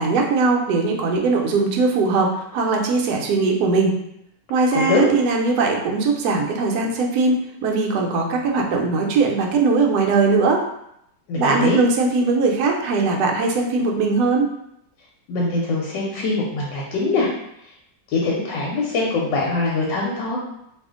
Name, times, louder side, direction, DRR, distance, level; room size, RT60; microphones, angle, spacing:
voice 1, 0.0-3.9 4.5-10.6 11.4-14.5, right 3 dB, 70° right, 1 dB, 1.0 m, -20 dB
voice 2, 4.7-5.1 11.3-11.8 15.3-17.3 18.1-20.4, left 3 dB, 85° left, -3 dB, 1.3 m, -22 dB
2.7 x 2.4 x 3.6 m, 0.78 s
omnidirectional pair, 1.9 m